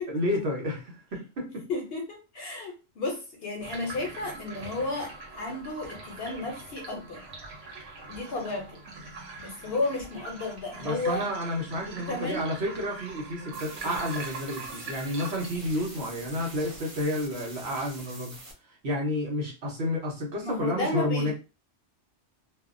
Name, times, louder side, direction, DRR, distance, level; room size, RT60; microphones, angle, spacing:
voice 1, 0.1-1.7 10.8-18.3 18.8-21.3, left 1 dB, 60° right, -1 dB, 1.2 m, -30 dB
voice 2, 1.7-7.2 8.1-8.8 9.4-11.2 12.0-12.4 20.4-21.3, left 2 dB, 60° left, 2 dB, 0.8 m, -33 dB
sound 1, 3.6-16.6, right 3 dB, 85° right, 1.1 m, -43 dB
sound 2, 13.5-18.5, right 2 dB, 35° right, 0.5 m, -45 dB
2.7 x 2.1 x 2.5 m, 0.29 s
omnidirectional pair, 1.2 m